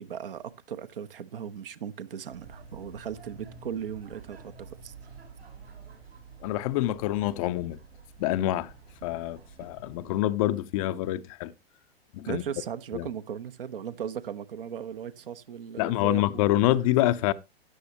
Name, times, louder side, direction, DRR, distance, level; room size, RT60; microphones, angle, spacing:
voice 1, 0.0-4.9 12.3-16.5, right 8 dB, 60° right, 1.0 m, -37 dB
sound 1, 2.3-10.2, right 5 dB, 75° right, 4.1 m, -49 dB
voice 2, 6.4-7.8 8.2-8.7 9.0-11.5 12.1-12.4 12.9-13.1 15.8-17.3, left 15 dB, 35° left, 0.6 m, -26 dB
13.0 x 9.8 x 2.9 m
figure-of-eight pair, 100°, 31 cm